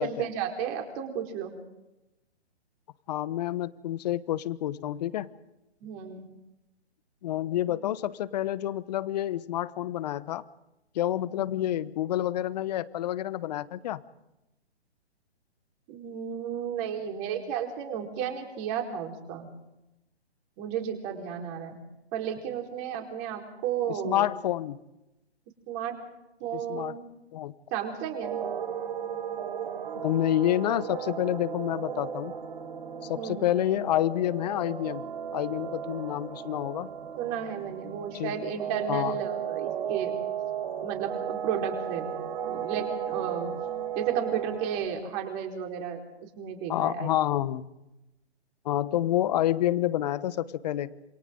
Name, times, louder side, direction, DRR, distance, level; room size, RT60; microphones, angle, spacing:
voice 1, 0.0-1.5 5.8-6.3 15.9-19.5 20.6-21.8 22.1-24.2 25.7-26.0 26.4-27.1 27.7-28.4 33.1-33.5 37.2-40.1 40.8-42.1 42.5-43.5 44.0-46.0 46.3-47.1, right 8 dB, 30° right, 3 dB, 4.5 m, -33 dB
voice 2, 3.1-5.3 7.2-10.4 10.9-14.0 23.9-24.8 26.5-26.9 27.3-27.5 29.9-32.3 33.0-36.9 38.1-38.4 38.9-39.2 46.7-47.7 48.6-50.9, left 13 dB, 40° left, 16 dB, 1.1 m, -28 dB
sound 1, 28.2-44.8, right 9 dB, 50° right, 5.2 m, -35 dB
28.0 x 27.0 x 3.9 m, 0.93 s
figure-of-eight pair, 135°, 34 cm